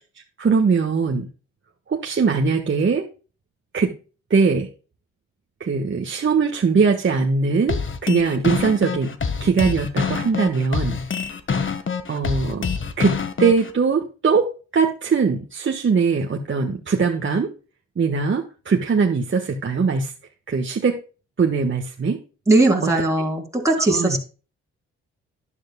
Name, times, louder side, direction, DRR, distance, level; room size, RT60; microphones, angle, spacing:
voice 1, 0.4-1.3 1.9-3.1 3.7-3.9 4.3-4.7 5.6-11.0 12.1-12.7 13.0-17.5 18.0-20.1 20.5-21.0 21.4-22.2 22.8-22.9 23.9-24.2, right 5 dB, 40° right, 2 dB, 1.5 m, -21 dB
sound 1, 7.7-13.7, left 5 dB, 45° left, 1.5 m, -25 dB
voice 2, 22.5-24.2, right 2 dB, 10° right, -1 dB, 3.4 m, -19 dB
12.0 x 10.5 x 2.3 m, 0.35 s
supercardioid pair, 60°, 29 cm